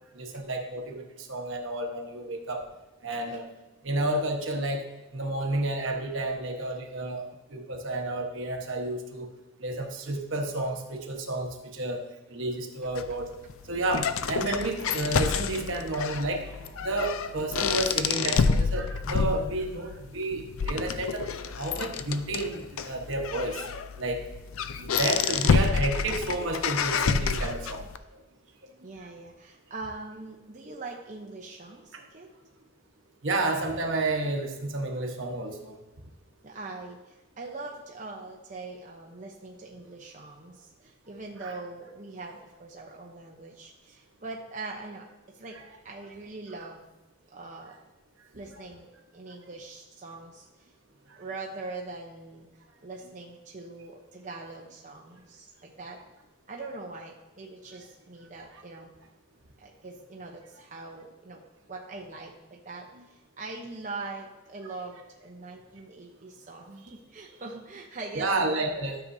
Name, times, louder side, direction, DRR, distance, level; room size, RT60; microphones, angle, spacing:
voice 1, 0.1-2.6 3.0-3.5 3.8-4.8 5.1-9.3 9.6-12.0 12.3-13.3 13.6-16.5 16.8-21.3 21.6-23.6 24.0-24.2 24.8-27.9 31.9-32.0 33.2-35.8 41.4-41.5 45.5-45.6 58.4-58.6 68.1-69.0, right 2 dB, 60° right, 3 dB, 1.1 m, -31 dB
kitchen door, 13.0-28.0, left 5 dB, 75° left, 0.5 m, -29 dB
voice 2, 28.8-32.3 36.4-45.6 45.8-46.9 47.3-47.8 48.3-50.7 51.2-52.5 52.8-56.0 56.5-58.9 59.6-61.4 61.7-68.3, right 3 dB, 35° right, -1 dB, 0.7 m, -42 dB
12.5 x 6.8 x 2.7 m, 1.1 s
head